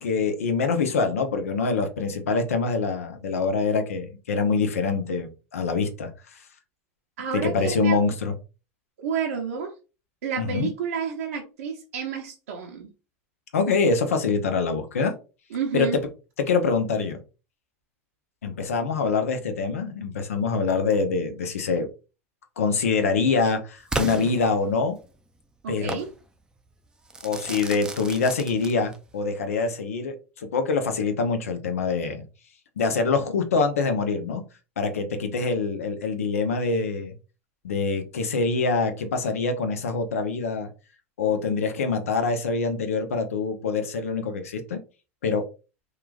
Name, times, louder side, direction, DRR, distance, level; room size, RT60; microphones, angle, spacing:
voice 1, 0.0-6.4 7.3-8.3 10.4-10.7 13.5-15.1 15.7-15.9 16.4-17.2 18.4-21.9 22.6-25.0 25.7-26.0 27.2-32.2 32.8-34.4 34.8-37.1 37.6-40.7 41.2-44.8 45.2-45.5, left 4 dB, 85° left, 6 dB, 0.6 m, -25 dB
voice 2, 7.2-8.0 9.0-9.7 10.2-12.9 15.5-16.0 25.6-26.1, right 6 dB, 80° right, -1 dB, 0.6 m, -30 dB
Crackle / Fireworks, 23.9-25.1 25.9-26.1 27.1-29.1, right 2 dB, 10° right, 0.4 m, -33 dB
3.0 x 2.4 x 2.3 m, 0.32 s
hypercardioid pair, 100°, 7 cm